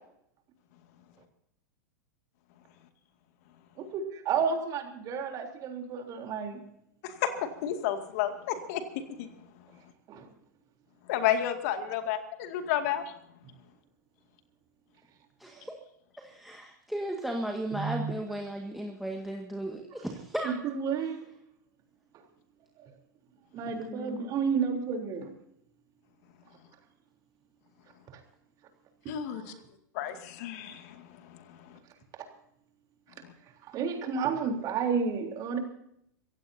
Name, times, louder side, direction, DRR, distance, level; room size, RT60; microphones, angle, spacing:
voice 1, 3.8-6.6 10.1-10.3 17.7-18.1 20.4-21.3 23.5-25.3 29.3-29.4 33.7-35.6, right 6 dB, 40° right, 3 dB, 3.6 m, -31 dB
voice 2, 7.0-9.3 11.1-13.0 29.1-29.5 29.9-31.1 31.7-31.8, left 10 dB, 55° left, 7 dB, 2.3 m, -31 dB
voice 3, 15.4-15.8 16.2-20.5 23.9-24.4, right 1 dB, ahead, 1 dB, 1.8 m, -35 dB
25.5 x 16.0 x 2.8 m, 0.74 s
hypercardioid pair, 100°, 10 cm